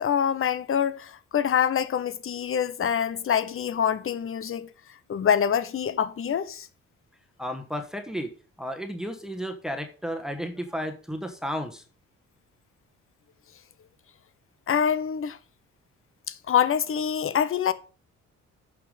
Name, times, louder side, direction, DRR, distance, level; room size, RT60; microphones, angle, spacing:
voice 1, 0.0-4.7 5.1-6.7 14.7-15.4 16.3-17.7, left 8 dB, 45° left, 0.9 m, -25 dB
voice 2, 7.4-8.3 8.6-11.8, equal, ahead, 1.4 m, -33 dB
8.9 x 5.9 x 5.1 m
cardioid pair, 90°, 30 cm